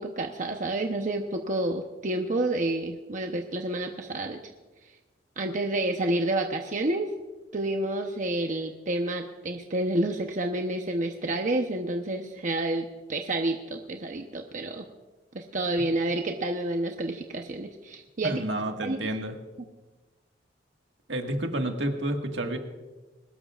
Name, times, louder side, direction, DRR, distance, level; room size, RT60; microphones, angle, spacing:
voice 1, 0.0-4.4 5.4-7.1 7.5-14.9 15.3-18.3 18.8-19.0, right 2 dB, 45° right, 3 dB, 0.9 m, -29 dB
voice 2, 18.2-19.4 21.1-22.6, right 1 dB, 75° right, 3 dB, 1.8 m, -30 dB
21.5 x 19.5 x 2.5 m, 1.2 s
head